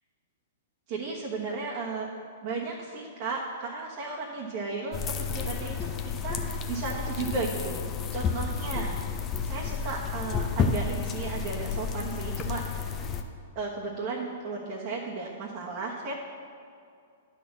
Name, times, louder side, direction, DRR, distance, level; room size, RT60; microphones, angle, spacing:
voice 1, 0.9-2.1 2.4-5.7 6.2-7.8 8.1-9.0 9.4-12.9 13.5-16.1, right 4 dB, 45° right, -4 dB, 1.3 m, -34 dB
sound 1, 4.9-13.2, left 5 dB, 25° left, 0.7 m, -31 dB
10.5 x 4.5 x 7.2 m, 2.3 s
hypercardioid pair, 115°, 0 cm